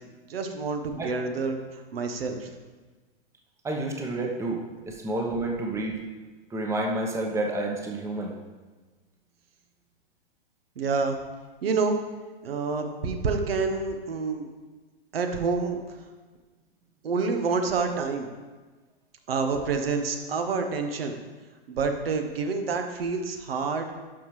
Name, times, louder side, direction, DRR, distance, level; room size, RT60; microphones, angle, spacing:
voice 1, 0.3-1.6 1.9-2.5 10.8-11.2 11.6-12.0 12.4-14.5 15.1-15.8 17.0-18.3 19.3-21.2 21.7-23.9, right 4 dB, 75° right, 5 dB, 1.1 m, -27 dB
voice 2, 3.6-6.0 6.5-8.3, right 2 dB, 10° right, 1 dB, 0.9 m, -29 dB
11.0 x 5.7 x 3.2 m, 1.3 s
hypercardioid pair, 120°, 30 cm